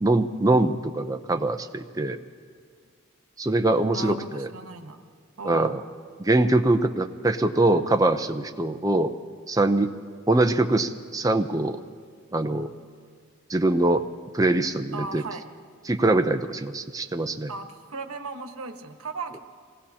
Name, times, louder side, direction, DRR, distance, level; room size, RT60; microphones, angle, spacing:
voice 1, 0.0-2.2 3.4-4.5 5.4-5.8 6.2-9.1 9.5-9.9 10.3-11.8 12.3-12.7 13.5-14.1 14.3-15.2 15.8-17.5, right 2 dB, 15° right, 7 dB, 0.6 m, -23 dB
voice 2, 3.9-5.0 5.4-5.8 14.9-15.4 17.5-19.4, right 3 dB, 85° right, 5 dB, 1.2 m, -36 dB
26.0 x 18.5 x 2.9 m, 2.1 s
head